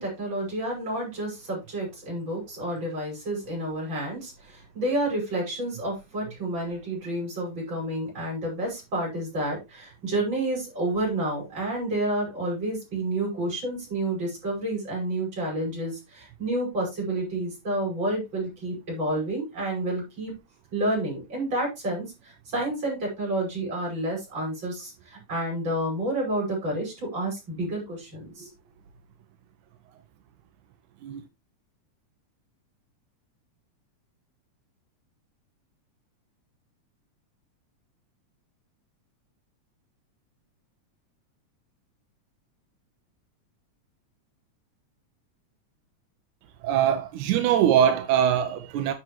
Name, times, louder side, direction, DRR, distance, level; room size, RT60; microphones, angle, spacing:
voice 1, 0.0-20.3 20.7-28.5, right 1 dB, 40° right, 6.4 m, -30 dB
voice 2, 46.6-48.9, right 9 dB, 85° right, 2.2 m, -22 dB
10.5 x 7.1 x 3.1 m
omnidirectional pair, 3.4 m